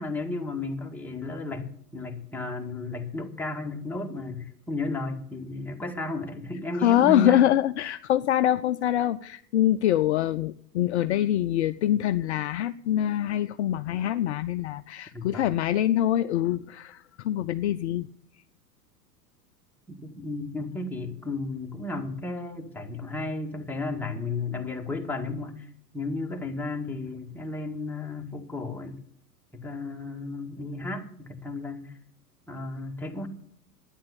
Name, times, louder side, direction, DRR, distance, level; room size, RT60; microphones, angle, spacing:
voice 1, 0.0-7.5 15.1-15.5 19.9-29.0 29.5-32.0 32.5-33.3, left 2 dB, 5° left, 1 dB, 1.9 m, -34 dB
voice 2, 6.7-18.1, left 12 dB, 45° left, 12 dB, 0.5 m, -24 dB
11.5 x 10.0 x 7.9 m, 0.65 s
figure-of-eight pair, 95°, 49 cm